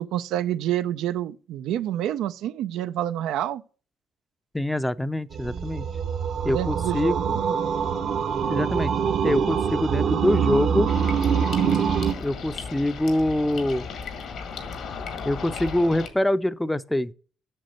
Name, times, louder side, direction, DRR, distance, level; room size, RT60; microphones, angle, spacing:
voice 1, 0.0-3.6 6.5-7.3, right 12 dB, 90° right, 0.4 m, -28 dB
voice 2, 4.5-5.8 6.4-7.4 8.4-8.9 9.2-10.9 12.2-13.9 15.2-17.1, left 1 dB, 10° left, 0.5 m, -24 dB
sound 1, 5.3-12.1, right 7 dB, 65° right, 0.9 m, -24 dB
sound 2, 10.9-16.1, left 5 dB, 75° left, 1.9 m, -36 dB
7.8 x 6.4 x 4.3 m
cardioid pair, 90°, 0 cm